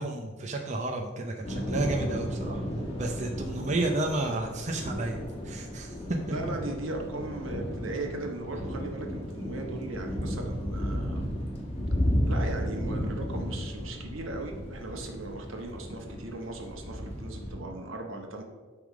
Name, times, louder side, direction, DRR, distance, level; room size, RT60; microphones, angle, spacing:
voice 1, 0.0-2.6 3.0-6.2, right 2 dB, 35° right, 1 dB, 0.6 m, -31 dB
Thunder / Rain, 1.4-17.6, equal, 30° left, 1.3 m, -33 dB
voice 2, 6.3-11.3 12.2-18.4, right 2 dB, 85° right, 2 dB, 1.2 m, -38 dB
9.8 x 3.5 x 4.9 m, 1.4 s
head